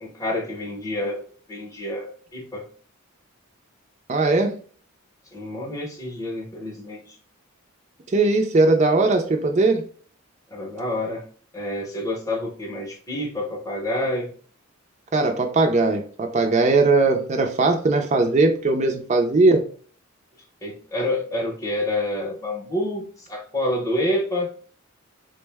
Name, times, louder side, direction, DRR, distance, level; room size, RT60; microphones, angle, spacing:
voice 1, 0.0-1.2 1.5-2.6 5.3-7.2 10.5-11.3 11.5-14.3 20.6-24.5, left 1 dB, 15° left, 1 dB, 0.7 m, -28 dB
voice 2, 4.1-4.6 8.1-9.9 15.1-19.6, right 3 dB, 30° right, 4 dB, 0.4 m, -19 dB
3.7 x 2.1 x 3.3 m, 0.43 s
head